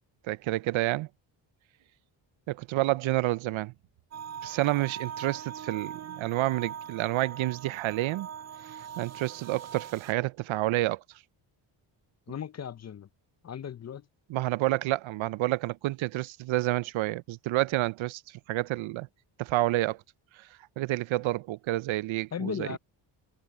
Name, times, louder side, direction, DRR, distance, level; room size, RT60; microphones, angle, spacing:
voice 1, 0.3-1.1 2.5-3.7 4.4-8.3 9.0-11.0 14.3-19.1 19.4-20.0 20.4-20.5 20.8-22.8, right 17 dB, 70° right, 0.7 m, -29 dB
sound 1, 4.1-10.1, right 8 dB, 35° right, 0.5 m, -42 dB
voice 2, 12.3-13.1 13.4-14.1 22.3-22.8, left 8 dB, 35° left, 0.6 m, -36 dB
cardioid pair, 80°, 48 cm